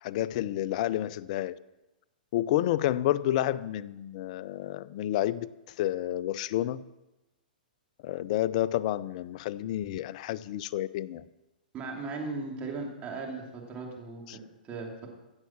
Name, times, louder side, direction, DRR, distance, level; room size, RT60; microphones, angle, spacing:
voice 1, 0.0-1.6 2.3-5.5 5.8-6.8 8.0-11.2 14.3-14.4, left 13 dB, 50° left, 17 dB, 0.5 m, -30 dB
voice 2, 11.7-15.1, right 3 dB, 25° right, 0 dB, 3.0 m, -38 dB
15.5 x 7.3 x 7.4 m, 1.0 s
hypercardioid pair, 125°, 5 cm